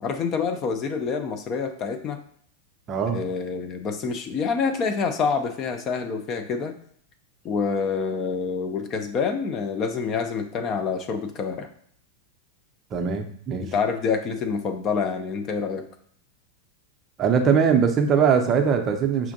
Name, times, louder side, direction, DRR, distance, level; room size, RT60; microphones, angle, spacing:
voice 1, 0.0-2.2 3.1-6.8 7.4-11.7 13.6-15.9, left 5 dB, 30° left, 7 dB, 0.5 m, -27 dB
voice 2, 2.9-3.2 12.9-13.7 17.2-19.3, right 6 dB, 30° right, 4 dB, 0.6 m, -21 dB
5.7 x 2.5 x 2.6 m, 0.63 s
figure-of-eight pair, 90°, 0 cm